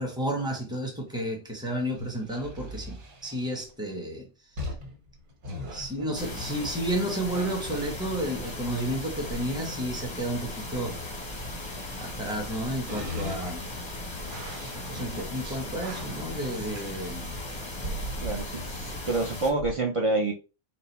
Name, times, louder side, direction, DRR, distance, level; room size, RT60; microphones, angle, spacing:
voice 1, 0.0-4.3 5.7-11.0 12.0-13.7 14.9-17.3 18.8-19.0, right 1 dB, 5° right, 0.9 m, -32 dB
sound 1, 1.7-3.7 4.6-6.9 7.3-8.6 9.1-9.5 10.4-12.5 12.9-17.3 17.8-18.6 18.9-19.0 19.5-19.8, equal, 75° right, 1.7 m, -40 dB
sound 2, 6.2-19.5, left 2 dB, 25° left, 0.7 m, -37 dB
voice 2, 18.2-20.3, right 2 dB, 50° right, 0.3 m, -27 dB
4.5 x 2.2 x 4.1 m
omnidirectional pair, 1.5 m